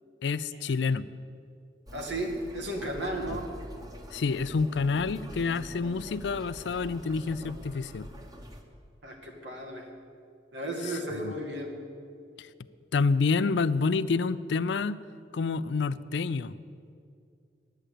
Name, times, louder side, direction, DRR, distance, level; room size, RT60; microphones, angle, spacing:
voice 1, 0.2-1.1 3.3-3.4 4.1-8.1 10.9-11.3 12.4-12.5 12.9-15.0 15.3-16.5, left 4 dB, 75° left, 16 dB, 0.4 m, -28 dB
sound 1, 1.9-8.6, equal, 20° right, 1.0 m, -45 dB
voice 2, 1.9-3.5 9.0-9.9 10.5-11.7, right 1 dB, 85° right, 1 dB, 2.0 m, -34 dB
10.5 x 8.9 x 8.4 m, 2.4 s
head